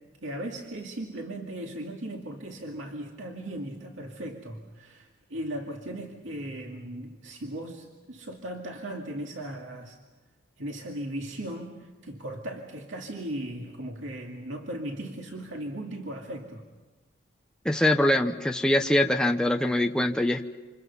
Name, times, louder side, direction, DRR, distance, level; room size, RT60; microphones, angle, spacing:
voice 1, 0.2-10.0 10.6-16.6, right 1 dB, 90° right, 0 dB, 2.3 m, -37 dB
voice 2, 17.6-20.4, left 1 dB, 5° left, 4 dB, 0.8 m, -23 dB
29.0 x 27.0 x 5.5 m, 1.3 s
head